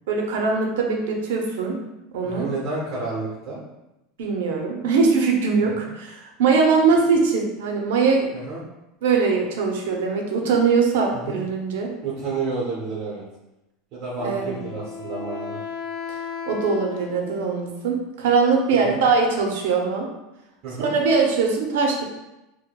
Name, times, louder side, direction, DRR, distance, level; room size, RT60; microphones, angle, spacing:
voice 1, 0.1-1.8 2.1-2.5 4.2-8.3 9.0-11.9 14.2-14.6 16.5-20.1 20.8-22.0, right 4 dB, 85° right, 1 dB, 0.6 m, -21 dB
voice 2, 2.2-3.6 5.8-5.9 8.3-8.6 11.1-11.4 12.0-13.2 13.9-15.6 18.7-19.0 20.6-20.9, right 3 dB, 45° right, -6 dB, 0.8 m, -30 dB
Wind instrument woodwind instrument, 14.2-17.8, left 6 dB, 25° left, 0.3 m, -35 dB
4.7 x 2.1 x 2.2 m, 0.94 s
supercardioid pair, 165°, 0 cm